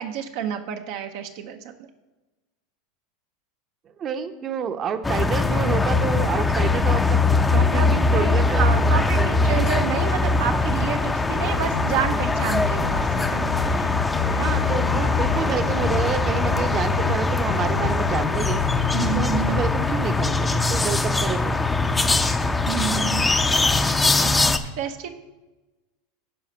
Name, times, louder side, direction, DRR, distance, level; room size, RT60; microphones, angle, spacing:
voice 1, 0.0-1.9 7.5-13.5 18.9-19.6 22.7-23.4 24.8-25.1, right 8 dB, 65° right, 5 dB, 0.7 m, -29 dB
voice 2, 4.0-7.2 7.5-9.8 14.3-18.6 19.1-21.5 24.2-24.4, right 7 dB, 40° right, 8 dB, 0.8 m, -29 dB
sound 1, 5.0-24.6, left 3 dB, 15° left, 0.6 m, -21 dB
sound 2, 11.7-17.2 17.5-18.9, left 6 dB, 85° left, 0.5 m, -31 dB
11.0 x 4.9 x 5.5 m, 1.1 s
hypercardioid pair, 100°, 0 cm